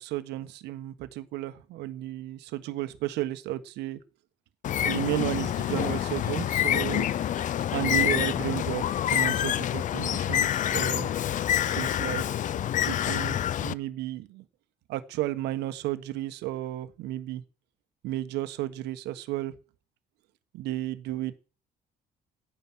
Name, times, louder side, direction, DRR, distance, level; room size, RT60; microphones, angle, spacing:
voice 1, 0.0-4.0 4.8-7.1 7.7-11.1 11.7-12.2 12.5-14.4 14.9-17.4 18.0-19.5 20.5-21.3, right 15 dB, 85° right, 1.4 m, -33 dB
Bird, 4.6-13.7, left 11 dB, 50° left, 0.5 m, -27 dB
Bird 2, 5.2-9.0 10.7-12.5, left 4 dB, 65° left, 4.0 m, -53 dB
13.5 x 9.3 x 6.3 m
cardioid pair, 110°, 17 cm